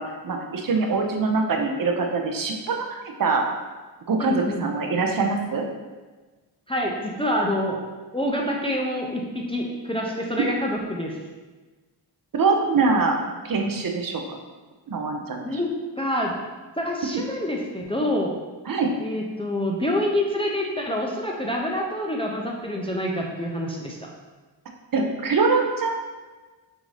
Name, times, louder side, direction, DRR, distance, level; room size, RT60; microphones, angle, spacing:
voice 1, 0.0-3.5 4.1-5.6 12.3-13.2 13.4-14.4 14.9-15.6 18.7-18.9 24.9-26.0, right 4 dB, 50° right, 3 dB, 0.6 m, -24 dB
voice 2, 4.2-4.6 6.7-7.8 8.1-11.2 15.4-16.4 16.8-18.3 19.0-24.1, left 1 dB, 15° left, -1 dB, 0.4 m, -27 dB
6.2 x 2.6 x 3.2 m, 1.3 s
wide cardioid pair, 125°, 42 cm